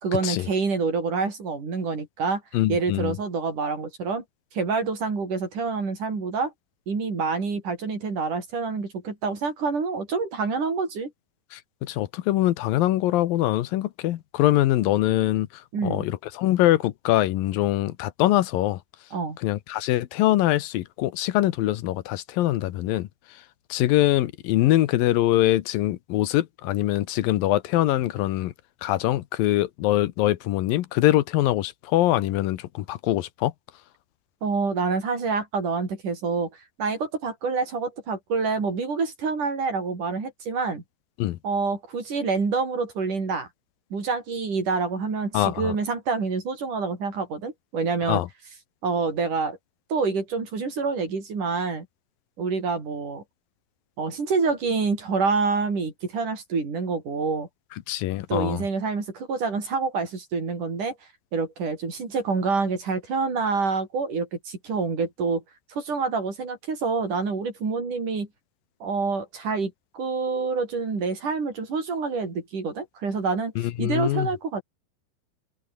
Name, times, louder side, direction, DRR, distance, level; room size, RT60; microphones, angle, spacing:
voice 1, 0.0-2.4 2.7-4.2 4.5-6.5 6.9-11.1 15.7-16.1 19.1-19.4 34.4-36.5 36.8-40.8 41.4-43.5 43.9-48.2 48.8-49.6 49.9-51.9 52.4-53.2 54.0-57.5 58.3-60.9 61.3-65.4 65.7-68.3 68.8-73.5 73.8-74.6, right 4 dB, 60° right, 7.2 m, -27 dB
voice 2, 2.5-3.2 11.5-18.8 19.4-23.1 23.7-28.5 28.8-33.5 41.2-41.4 45.3-45.8 48.1-48.3 57.9-58.6 73.6-74.3, left 15 dB, 80° left, 2.8 m, -23 dB
omnidirectional pair, 4.0 m